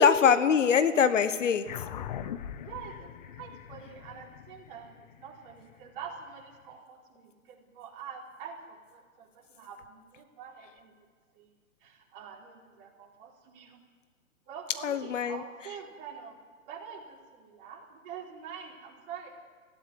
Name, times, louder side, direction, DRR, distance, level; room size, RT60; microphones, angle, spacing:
voice 1, 0.0-1.7 14.8-15.4, left 7 dB, 60° left, 12 dB, 1.3 m, -23 dB
sound 1, 1.7-6.4, left 10 dB, 30° left, 0.8 m, -42 dB
voice 2, 2.6-10.9 11.3-11.5 11.8-13.8 14.5-16.4 16.7-19.4, right 7 dB, 40° right, -2 dB, 4.8 m, -45 dB
17.0 x 15.5 x 9.8 m, 1.5 s
hypercardioid pair, 140°, 43 cm